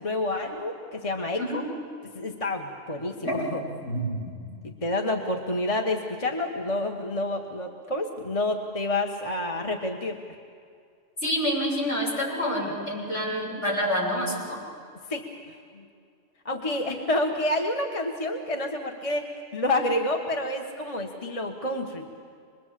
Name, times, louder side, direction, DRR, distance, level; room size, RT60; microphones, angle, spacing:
voice 1, 0.0-1.4 2.1-3.6 4.6-10.2 15.1-15.3 15.7-15.9 16.4-22.1, left 1 dB, 30° left, 2 dB, 1.5 m, -29 dB
voice 2, 3.8-4.3 11.2-14.6, equal, 70° left, -5 dB, 8.0 m, -27 dB
26.5 x 21.5 x 7.6 m, 2.3 s
omnidirectional pair, 1.3 m